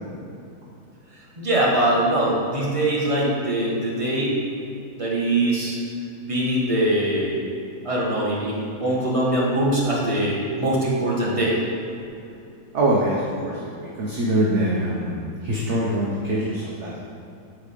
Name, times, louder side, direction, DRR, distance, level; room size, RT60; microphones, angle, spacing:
voice 1, 1.4-4.3 5.0-5.7 6.2-7.3 7.8-11.6, right 1 dB, 20° right, -5 dB, 1.5 m, -22 dB
voice 2, 12.7-15.1 15.4-17.0, right 1 dB, 50° right, -4 dB, 1.1 m, -23 dB
7.7 x 4.8 x 5.2 m, 2.7 s
omnidirectional pair, 1.7 m